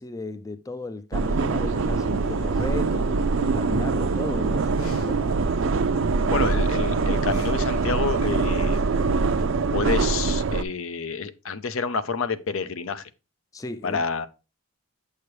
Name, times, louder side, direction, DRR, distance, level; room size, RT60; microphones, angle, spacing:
voice 1, 0.0-5.3 13.5-14.0, left 2 dB, 15° left, 0.3 m, -35 dB
sound 1, 1.1-9.4, right 1 dB, 90° left, 1.7 m, -39 dB
sound 2, 1.1-10.6, right 4 dB, 65° right, 0.5 m, -23 dB
voice 2, 6.3-8.8 9.7-13.1 13.8-14.3, left 5 dB, 75° left, 0.6 m, -28 dB
8.5 x 6.6 x 3.1 m
head